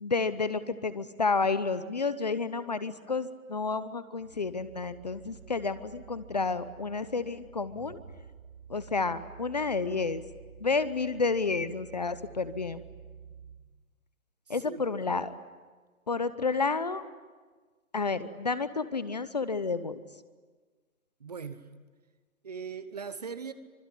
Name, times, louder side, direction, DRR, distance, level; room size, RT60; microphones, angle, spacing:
voice 1, 0.0-8.0 8.7-10.2 10.6-12.8 14.5-15.3 16.1-17.0 17.9-20.0, left 4 dB, 30° left, 14 dB, 0.8 m, -30 dB
sound 1, 4.1-13.6, right 7 dB, 75° right, 4.4 m, -50 dB
voice 2, 14.5-14.8 21.2-21.7 22.4-23.5, right 6 dB, 30° right, 13 dB, 1.0 m, -39 dB
26.0 x 23.5 x 9.9 m, 1.4 s
hypercardioid pair, 165°, 42 cm